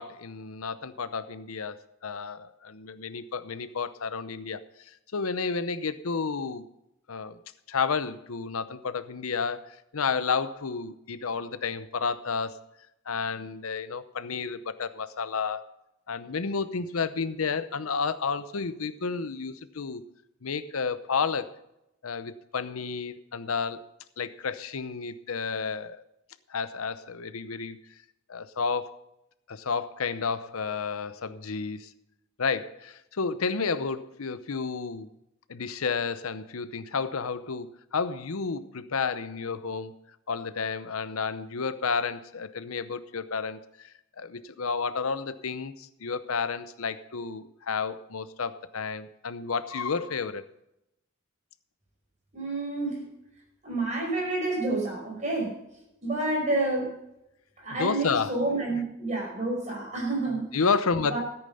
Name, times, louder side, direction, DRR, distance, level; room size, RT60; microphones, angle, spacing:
voice 1, 0.0-4.6 4.9-6.6 7.1-7.4 7.7-12.6 13.1-15.6 16.1-20.0 20.4-21.5 22.0-23.9 24.2-26.0 26.5-27.8 28.3-28.9 29.5-31.9 32.4-35.1 35.5-40.0 40.3-50.4 57.7-58.4 60.5-61.2, left 5 dB, 85° left, 14 dB, 0.7 m, -31 dB
voice 2, 52.3-53.0 53.6-55.5 56.0-56.9 57.6-60.5 61.1-61.2, right 2 dB, 35° right, -1 dB, 5.3 m, -29 dB
14.0 x 8.9 x 5.5 m, 0.86 s
head